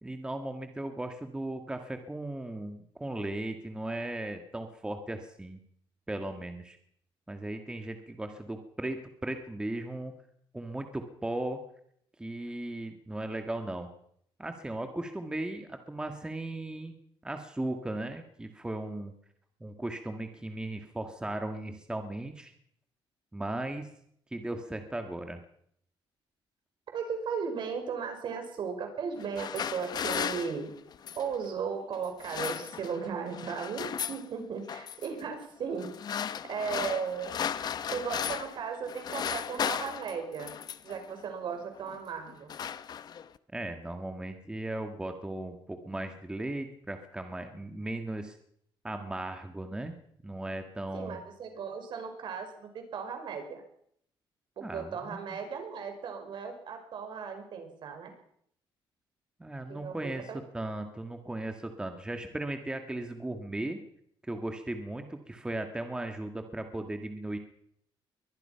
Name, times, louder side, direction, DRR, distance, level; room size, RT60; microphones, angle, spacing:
voice 1, 0.0-5.6 6.1-6.8 7.3-10.1 10.5-11.6 12.2-13.9 14.4-17.0 17.2-19.1 19.6-22.5 23.3-23.9 24.3-25.4 43.5-48.4 48.8-50.0 50.2-51.2 54.6-55.4 59.4-63.8 64.2-67.4, right 1 dB, 10° right, 6 dB, 1.8 m, -37 dB
voice 2, 26.9-30.7 31.2-35.9 36.5-37.3 37.9-40.5 40.8-42.6 50.9-53.6 54.6-58.1 59.7-60.0 60.3-60.4, right 6 dB, 55° right, 6 dB, 5.5 m, -36 dB
sound 1, 29.2-31.4 32.0-33.1 33.3-34.3 34.7-35.1 35.8-38.6 38.9-41.0 41.8-42.0 42.3-43.4, left 8 dB, 45° left, 1.0 m, -35 dB
22.5 x 20.5 x 5.8 m, 0.70 s
cardioid pair, 130°, 9 cm